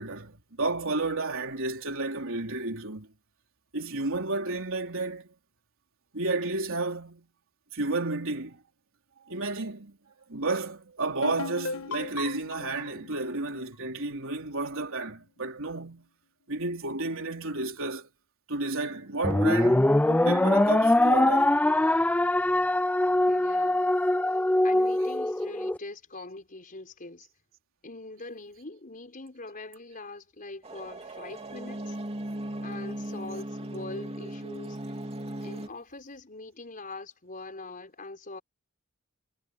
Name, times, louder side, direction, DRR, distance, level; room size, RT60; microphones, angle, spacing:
voice 1, 0.0-3.1 3.7-5.3 6.1-7.3 7.7-8.6 9.3-10.0 10.3-16.1 16.5-18.1 18.5-21.6 24.8-24.9, right 2 dB, 65° right, 4.2 m, -32 dB
sound 1, 11.2-14.8, left 4 dB, 70° left, 1.3 m, -39 dB
sound 2, 19.2-25.8, left 1 dB, 5° left, 0.4 m, -23 dB
voice 2, 23.3-23.9 24.6-27.3 27.8-32.0 32.6-34.8 35.4-38.4, left 2 dB, 40° left, 5.0 m, -42 dB
sound 3, 30.6-35.7, right 1 dB, 30° right, 2.8 m, -37 dB
head